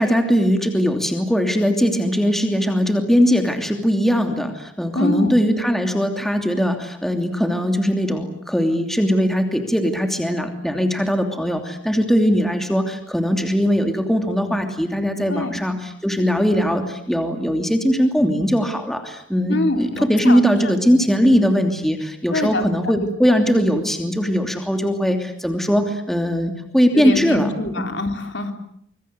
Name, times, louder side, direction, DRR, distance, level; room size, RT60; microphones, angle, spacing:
voice 1, 0.0-27.5, equal, ahead, 5 dB, 2.9 m, -20 dB
voice 2, 4.9-5.3 15.3-15.6 19.5-20.8 21.3-21.4 22.3-23.1 26.9-28.5, left 2 dB, 65° left, 6 dB, 3.5 m, -25 dB
25.5 x 23.5 x 8.3 m, 0.69 s
head